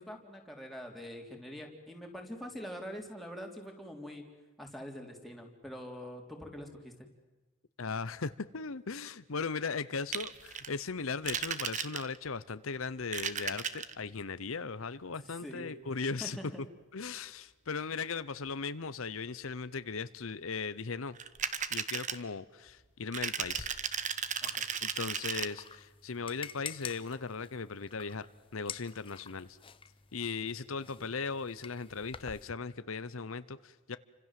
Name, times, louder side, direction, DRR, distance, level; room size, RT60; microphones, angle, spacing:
voice 1, 0.0-4.2 4.6-7.1 15.2-15.7 16.2-16.7 24.4-24.6, equal, ahead, 1 dB, 3.6 m, -44 dB
voice 2, 7.8-16.4 16.9-21.2 21.7-23.7 24.8-28.2 28.5-29.6 30.1-34.0, left 4 dB, 75° left, 14 dB, 0.8 m, -38 dB
sound 1, 10.1-10.7 11.2-12.3 13.0-13.9 21.1-22.2 23.1-25.5, right 7 dB, 35° right, 1.1 m, -35 dB
sound 2, 23.4-32.4, left 6 dB, 25° left, 0.9 m, -49 dB
30.0 x 26.0 x 7.6 m, 1.1 s
head